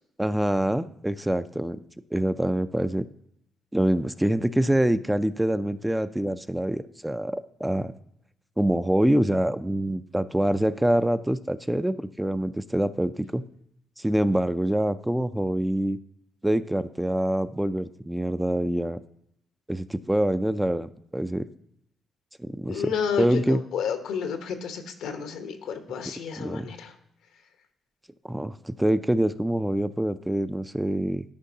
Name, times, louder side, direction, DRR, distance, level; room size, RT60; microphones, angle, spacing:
voice 1, 0.2-1.8 2.1-3.1 3.7-7.9 8.6-13.4 14.0-16.0 16.4-19.0 19.7-21.5 22.4-23.6 26.4-26.7 28.3-31.2, right 1 dB, 5° right, 11 dB, 0.4 m, -25 dB
voice 2, 22.7-26.9, left 7 dB, 85° left, 6 dB, 1.0 m, -31 dB
12.0 x 5.2 x 2.8 m, 0.75 s
cardioid pair, 90°, 0 cm